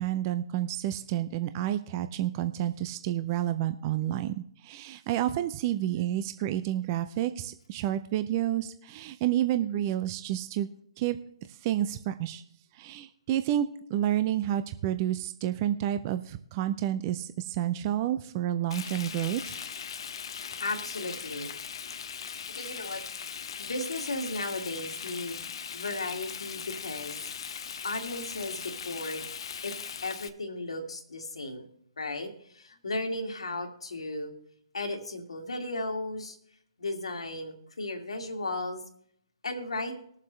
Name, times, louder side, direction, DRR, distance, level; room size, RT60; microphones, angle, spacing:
voice 1, 0.0-10.7 11.0-11.2 11.5-12.4 12.7-19.6, right 12 dB, 35° right, 10 dB, 0.5 m, -30 dB
Frying (food), 18.7-30.3, left 7 dB, 60° left, 0.8 m, -39 dB
voice 2, 20.6-21.5 22.5-23.0 23.6-25.5 25.7-27.2 27.8-29.2 29.6-29.7 30.0-31.7 32.0-34.3 34.7-36.4 36.8-38.8 39.4-39.9, left 2 dB, 80° left, 3 dB, 2.2 m, -35 dB
20.5 x 7.4 x 3.2 m, 0.67 s
hypercardioid pair, 135°, 3 cm